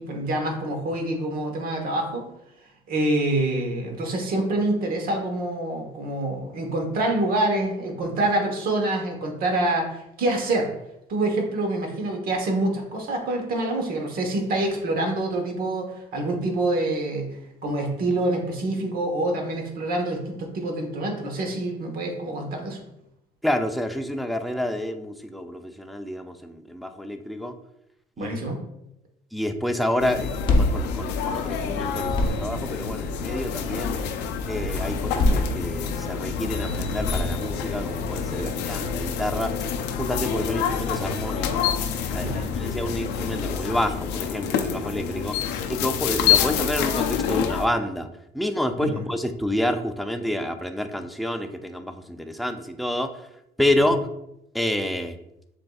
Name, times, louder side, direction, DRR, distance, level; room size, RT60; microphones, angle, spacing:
voice 1, 0.0-2.2 2.9-10.7 11.1-22.8 28.2-28.6 38.4-38.6 42.2-42.5 48.8-49.0 53.9-54.0, right 2 dB, 60° right, 2 dB, 1.1 m, -26 dB
voice 2, 23.4-27.5 28.2-28.3 29.3-34.0 34.5-39.5 40.0-41.6 42.1-45.4 45.7-48.1 48.3-53.1 53.6-54.0 54.5-55.2, left 1 dB, ahead, 6 dB, 0.3 m, -28 dB
sound 1, 30.0-47.7, left 7 dB, 85° left, 0.5 m, -27 dB
sound 2, 30.2-31.7 31.9-32.7 34.9-36.1 36.9-37.7, left 1 dB, 30° left, 0.8 m, -25 dB
7.3 x 2.6 x 2.3 m, 0.83 s
cardioid pair, 110°, 17 cm